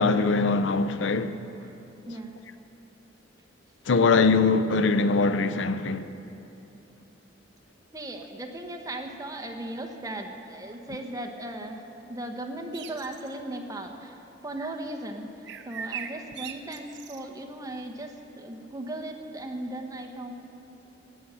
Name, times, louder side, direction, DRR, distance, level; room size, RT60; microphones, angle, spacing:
voice 1, 0.0-1.3 3.9-6.1, left 4 dB, 75° left, 0.5 m, -22 dB
voice 2, 7.9-11.8 12.1-14.1 14.4-15.3 15.6-20.3, right 1 dB, 20° right, 1.0 m, -37 dB
sound 1, 12.7-13.3 15.4-17.2, right 7 dB, 65° right, 0.7 m, -39 dB
16.5 x 6.3 x 8.6 m
head